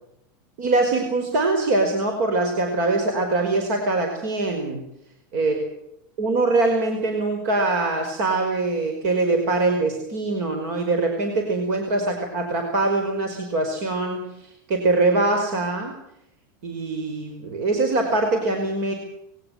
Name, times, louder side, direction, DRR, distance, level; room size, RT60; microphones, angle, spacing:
voice 1, 0.6-4.8 5.3-5.6 6.2-14.3 14.7-16.0 16.6-18.9, right 2 dB, 50° right, 4 dB, 5.2 m, -23 dB
21.5 x 18.5 x 8.0 m, 0.80 s
supercardioid pair, 165°, 11 cm